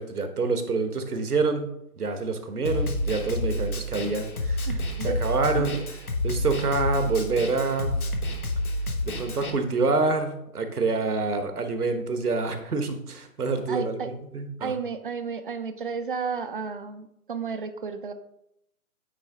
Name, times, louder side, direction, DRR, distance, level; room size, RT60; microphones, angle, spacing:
voice 1, 0.0-1.7 2.0-5.8 6.2-8.0 9.0-14.7, right 3 dB, 80° right, 7 dB, 1.2 m, -27 dB
Snare drum, 2.7-9.5, left 1 dB, 70° left, 1.3 m, -29 dB
voice 2, 4.7-5.2 5.7-5.8 13.7-14.1 14.6-18.1, right 5 dB, 40° right, 9 dB, 0.4 m, -32 dB
8.9 x 3.4 x 3.6 m, 0.80 s
figure-of-eight pair, 140°, 44 cm